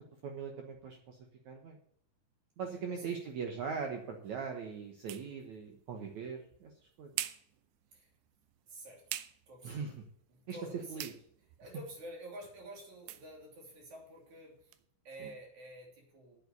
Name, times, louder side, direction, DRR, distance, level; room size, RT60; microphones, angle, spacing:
voice 1, 0.2-1.2 1.5-1.8 2.6-6.7 7.0-7.1 9.6-9.9 10.5-10.6 10.9-11.1 15.2-15.3, right 6 dB, 70° right, 3 dB, 1.7 m, -40 dB
voice 2, 2.6-3.2 7.9-8.1 8.7-9.2 9.5-9.8 10.3-11.0 11.6-14.7 15.0-16.4, right 1 dB, 45° right, 0 dB, 4.2 m, -49 dB
sound 1, 3.3-14.9, right 14 dB, 90° right, 2.9 m, -48 dB
8.3 x 8.0 x 7.9 m, 0.68 s
omnidirectional pair, 5.0 m